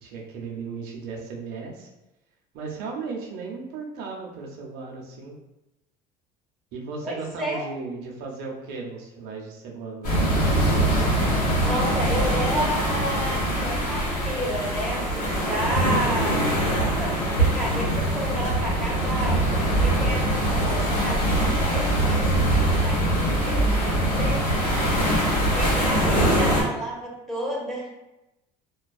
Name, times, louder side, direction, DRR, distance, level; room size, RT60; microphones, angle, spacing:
voice 1, 0.0-1.9 2.5-5.4 6.7-10.4 24.8-25.3, right 4 dB, 65° right, -1 dB, 0.6 m, -36 dB
voice 2, 7.0-7.7 11.6-24.5 24.8-25.3 25.5-27.9, right 1 dB, ahead, -5 dB, 0.7 m, -32 dB
sound 1, 10.0-26.6, right 1 dB, 70° left, 1.2 m, -23 dB
2.4 x 2.3 x 2.2 m, 0.94 s
supercardioid pair, 115°, 17 cm